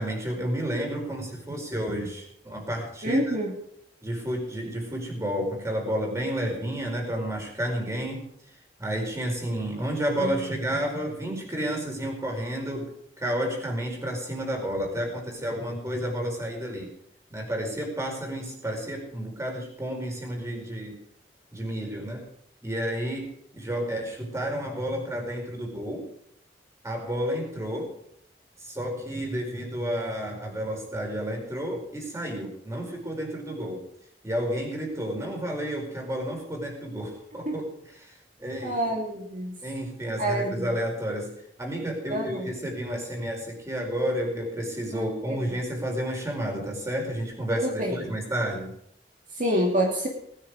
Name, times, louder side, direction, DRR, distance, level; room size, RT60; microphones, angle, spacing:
voice 1, 0.0-3.4 4.0-8.2 8.8-12.9 13.2-16.9 17.3-21.0 21.5-22.2 22.6-23.3 23.5-26.0 26.8-27.9 28.6-33.8 34.2-38.1 38.4-38.8 39.6-41.3 41.6-48.7, equal, 15° right, 1 dB, 4.9 m, -31 dB
voice 2, 3.0-3.5 10.2-10.3 37.5-37.6 38.6-39.5 40.2-40.7 42.1-42.5 44.9-45.0 45.3-45.4 47.6-48.1 49.4-50.1, right 1 dB, 50° right, -1 dB, 2.6 m, -27 dB
20.0 x 10.0 x 4.9 m, 0.72 s
head